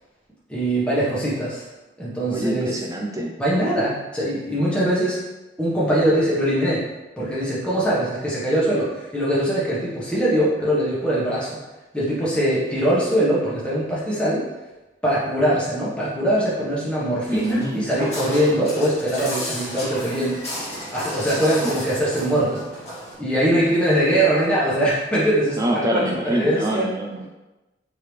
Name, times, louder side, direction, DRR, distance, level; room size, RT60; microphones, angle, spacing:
voice 1, 0.5-1.6 2.0-2.7 3.4-5.2 5.6-6.8 7.2-11.6 11.9-14.4 15.0-20.4 20.9-22.6 23.2-26.8, right 1 dB, 5° left, -8 dB, 1.0 m, -22 dB
voice 2, 2.3-3.3 17.3-17.9 25.6-27.3, right 1 dB, 20° right, 0 dB, 0.4 m, -25 dB
Walk footsteps, 17.3-23.1, equal, 35° left, 1.5 m, -33 dB
3.7 x 3.4 x 3.2 m, 1.1 s
head